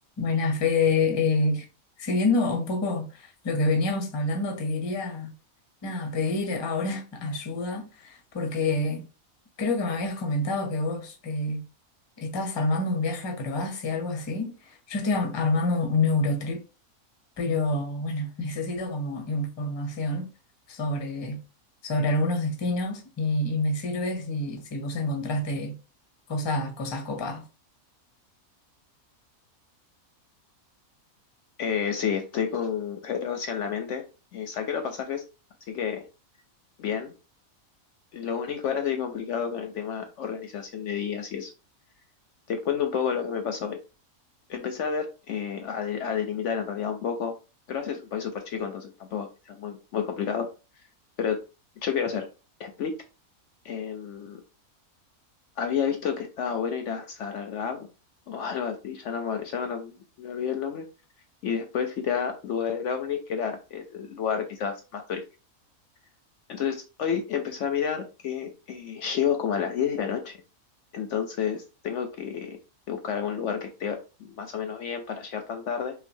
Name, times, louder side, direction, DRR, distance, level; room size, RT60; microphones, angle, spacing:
voice 1, 0.2-1.7 2.0-5.3 5.8-9.1 9.6-11.6 12.2-16.6 17.4-20.3 20.7-21.4 21.8-25.8 26.3-27.4, left 2 dB, 30° left, 0.5 m, -27 dB
voice 2, 31.6-34.0 34.3-35.2 35.7-36.0 36.8-37.1 38.1-41.5 42.5-43.8 44.5-47.3 47.7-50.5 51.2-51.4 51.8-52.3 52.6-52.9 53.6-54.4 55.6-57.9 58.3-60.8 61.4-65.2 66.5-70.4 70.9-72.6 72.9-75.9, left 7 dB, 65° left, 0.8 m, -30 dB
5.7 x 2.3 x 2.7 m
omnidirectional pair, 1.5 m